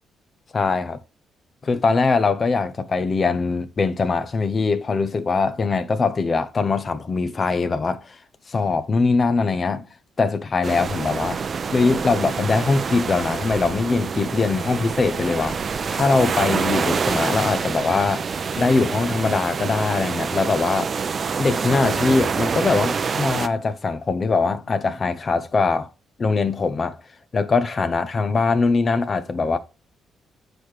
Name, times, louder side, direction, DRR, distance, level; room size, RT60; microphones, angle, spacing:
voice 1, 0.5-1.0 1.6-8.2 8.5-9.9 10.2-11.4 11.7-15.6 15.9-18.2 18.6-20.9 21.4-25.9 26.2-27.0 27.3-29.6, left 4 dB, 35° left, 0.7 m, -22 dB
sound 1, 10.6-23.5, right 5 dB, 45° right, 0.5 m, -26 dB
7.8 x 4.9 x 4.6 m
cardioid pair, 90°, 0 cm